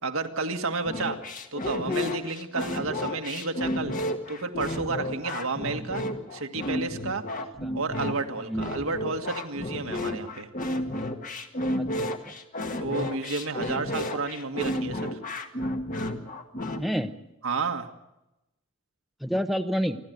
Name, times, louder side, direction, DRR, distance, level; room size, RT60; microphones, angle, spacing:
voice 1, 0.0-1.2 1.5-3.9 4.3-6.0 6.3-7.2 7.7-10.5 12.8-15.2 17.4-17.9, right 3 dB, 80° right, 5 dB, 1.8 m, -31 dB
sound 1, 0.9-16.8, left 1 dB, 40° left, 1.7 m, -32 dB
voice 2, 8.4-8.7 11.7-11.9 12.3-12.4 16.8-17.1 19.2-20.0, equal, ahead, 6 dB, 0.9 m, -29 dB
28.5 x 12.0 x 9.4 m, 0.93 s
head